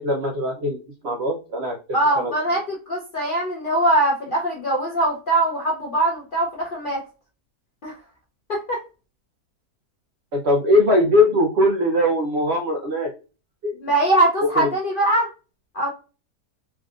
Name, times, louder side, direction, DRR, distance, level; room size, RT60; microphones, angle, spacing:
voice 1, 0.0-1.8 2.2-2.3 10.3-13.1 13.6-13.8 14.4-14.7, left 1 dB, 90° right, 3 dB, 0.5 m, -20 dB
voice 2, 1.9-7.0 7.8-7.9 8.5-8.8 13.8-15.3 15.7-15.9, right 1 dB, 60° left, -3 dB, 0.5 m, -22 dB
3.4 x 2.4 x 2.4 m, 0.33 s
omnidirectional pair, 1.8 m